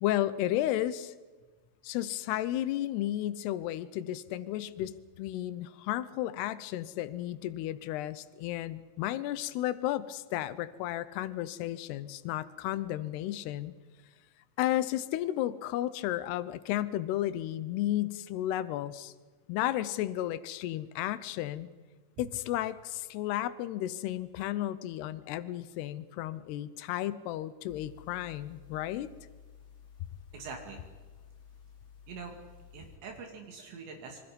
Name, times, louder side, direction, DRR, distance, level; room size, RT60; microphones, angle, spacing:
voice 1, 0.0-1.1 1.8-13.7 14.6-19.1 19.5-21.7 22.2-29.1, left 13 dB, 75° left, 15 dB, 2.5 m, -33 dB
sound 1, 27.7-33.0, left 7 dB, 20° left, 2.7 m, -54 dB
voice 2, 30.3-30.8 32.1-32.4 32.7-34.2, right 4 dB, 65° right, 2 dB, 4.7 m, -44 dB
26.5 x 25.0 x 5.3 m, 1.3 s
omnidirectional pair, 5.5 m